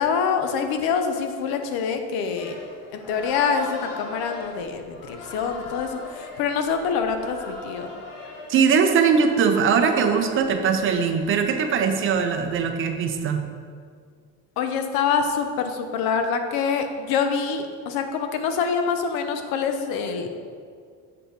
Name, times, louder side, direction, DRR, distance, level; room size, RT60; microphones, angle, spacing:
voice 1, 0.0-2.6 2.9-7.9 14.6-20.3, left 6 dB, 85° left, 6 dB, 0.8 m, -25 dB
sound 1, 2.4-13.2, left 3 dB, 60° left, 1.9 m, -40 dB
voice 2, 8.5-13.4, right 6 dB, 35° right, 6 dB, 0.5 m, -21 dB
7.5 x 4.5 x 5.1 m, 2.1 s
cardioid pair, 170°, 36 cm